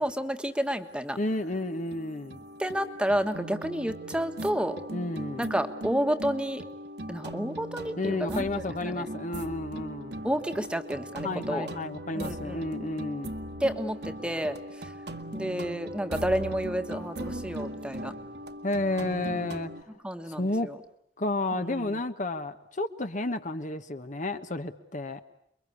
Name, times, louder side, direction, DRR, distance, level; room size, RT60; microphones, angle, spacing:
voice 1, 0.0-1.2 2.6-4.8 5.4-6.6 7.1-9.1 10.2-11.7 12.1-12.6 13.6-14.9 15.3-18.1 20.0-20.8 21.5-22.0, equal, 5° right, 8 dB, 1.4 m, -30 dB
sound 1, 0.9-1.0 1.3-19.8, right 1 dB, 65° right, 1.8 m, -39 dB
voice 2, 1.2-2.4 4.9-5.5 8.0-10.1 11.2-13.4 18.6-19.7 20.3-20.7 21.2-25.2, left 2 dB, 45° left, 9 dB, 1.2 m, -31 dB
29.0 x 23.0 x 8.5 m, 0.73 s
head